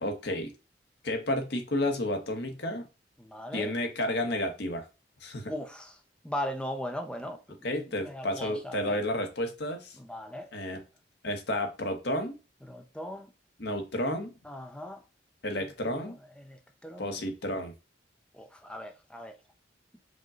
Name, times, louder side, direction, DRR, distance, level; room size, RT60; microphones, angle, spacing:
voice 1, 0.0-0.5 1.0-2.9 3.5-4.9 5.2-5.5 7.6-10.0 10.5-10.8 11.2-12.4 13.6-14.3 15.4-16.1 17.0-17.7, left 1 dB, 65° left, 1.0 m, -31 dB
voice 2, 3.2-3.7 5.5-5.9 6.2-7.4 8.0-9.0 10.0-10.8 12.6-13.3 14.4-15.0 15.8-17.2 18.3-19.4, equal, 5° left, 0.5 m, -39 dB
5.1 x 2.2 x 3.7 m
head